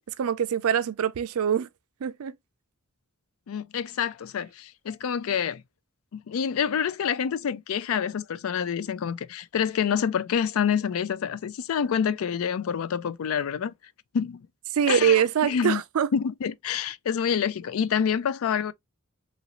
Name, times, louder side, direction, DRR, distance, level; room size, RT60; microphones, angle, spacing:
voice 1, 0.1-1.7 2.0-2.3 14.7-16.1, right 8 dB, 85° right, 0.4 m, -24 dB
voice 2, 3.5-5.6 6.1-13.7 14.1-14.5 14.9-15.8 16.1-18.7, left 7 dB, 70° left, 0.4 m, -27 dB
3.1 x 2.5 x 2.8 m
head